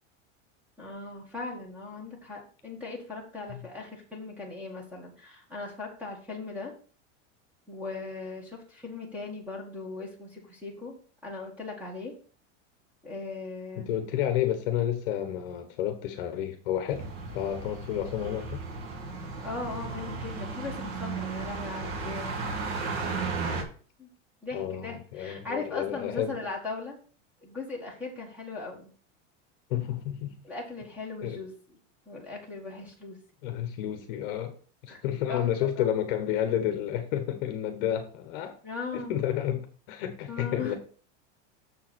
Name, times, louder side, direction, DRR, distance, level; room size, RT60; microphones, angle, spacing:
voice 1, 0.8-6.7 7.7-12.1 13.0-13.9 19.4-22.4 24.0-24.1 24.4-27.0 27.4-28.9 30.4-31.5 32.1-33.2 34.9-35.0 35.3-35.4 35.8-35.9 38.6-39.1 40.3-40.8, left 3 dB, 5° right, 1.6 m, -38 dB
voice 2, 13.8-17.1 17.3-18.6 24.5-26.4 29.7-30.3 31.2-31.4 33.4-34.6 34.8-38.6 38.9-40.7, left 11 dB, 45° left, 1.0 m, -30 dB
sound 1, 16.9-23.6, right 4 dB, 55° right, 1.8 m, -35 dB
6.9 x 4.6 x 6.0 m
supercardioid pair, 180°, 38 cm